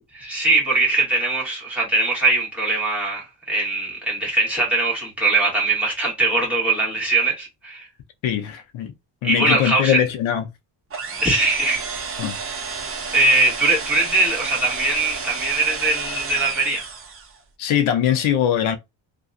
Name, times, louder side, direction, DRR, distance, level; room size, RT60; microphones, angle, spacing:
voice 1, 0.1-7.9 9.2-10.0 11.2-11.8 13.1-16.8, right 2 dB, 5° right, 1.3 m, -21 dB
voice 2, 8.2-8.9 9.2-10.5 12.2-12.4 17.6-18.8, left 10 dB, 80° left, 0.6 m, -21 dB
sound 1, 10.9-17.4, right 5 dB, 30° right, 0.5 m, -31 dB
2.7 x 2.2 x 2.4 m
cardioid pair, 150°, 47 cm